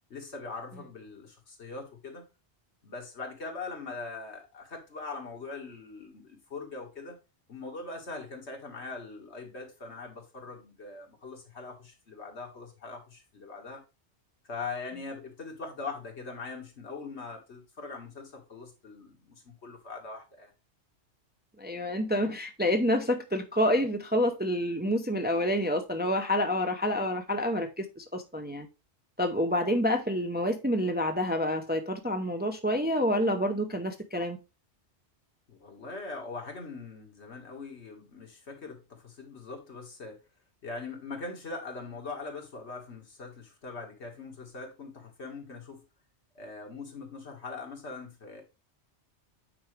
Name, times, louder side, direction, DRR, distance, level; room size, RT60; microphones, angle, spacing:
voice 1, 0.1-2.2 2.8-7.2 7.5-13.8 14.5-20.5 35.5-40.2 40.6-45.8 46.4-48.4, left 3 dB, 75° left, 2.1 m, -41 dB
voice 2, 21.6-28.7 29.2-34.4, equal, 10° right, 0.6 m, -28 dB
8.6 x 4.8 x 3.2 m
omnidirectional pair, 1.1 m